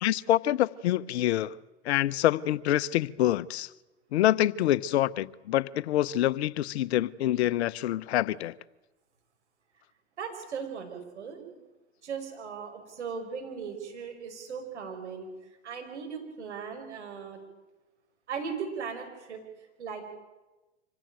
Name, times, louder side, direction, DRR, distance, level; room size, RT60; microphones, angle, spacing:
voice 1, 0.0-1.6 1.8-3.7 4.1-8.5, left 13 dB, 70° left, 0.9 m, -26 dB
voice 2, 10.2-11.4 12.0-15.3 15.6-17.4 18.3-19.4 19.8-20.0, right 6 dB, 85° right, 5.7 m, -38 dB
25.5 x 16.5 x 9.0 m
hypercardioid pair, 100°, 34 cm